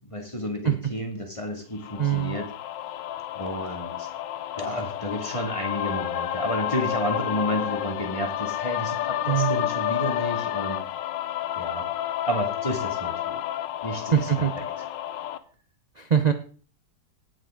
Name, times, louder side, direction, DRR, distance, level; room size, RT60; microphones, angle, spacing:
voice 1, 0.1-2.5 3.3-4.1 4.6-10.8 11.6-11.9 12.3-13.4 13.8-14.5, equal, 15° left, 2 dB, 2.2 m, -31 dB
sound 1, 1.8-15.4, left 12 dB, 80° left, 1.4 m, -30 dB
voice 2, 2.0-2.4 9.2-9.6 14.1-14.5 16.0-16.3, right 9 dB, 85° right, 8 dB, 0.3 m, -22 dB
17.5 x 7.7 x 3.7 m, 0.41 s
omnidirectional pair, 2.0 m